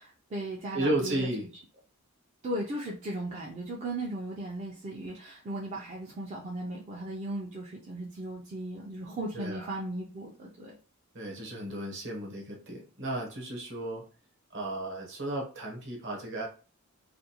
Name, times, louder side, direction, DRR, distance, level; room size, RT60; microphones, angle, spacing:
voice 1, 0.0-1.3 2.4-10.7, right 1 dB, 30° right, -2 dB, 0.4 m, -37 dB
voice 2, 0.7-1.5 9.3-9.8 11.1-14.0 14.5-16.5, right 1 dB, 55° right, -1 dB, 1.0 m, -34 dB
2.5 x 2.2 x 2.7 m, 0.36 s
head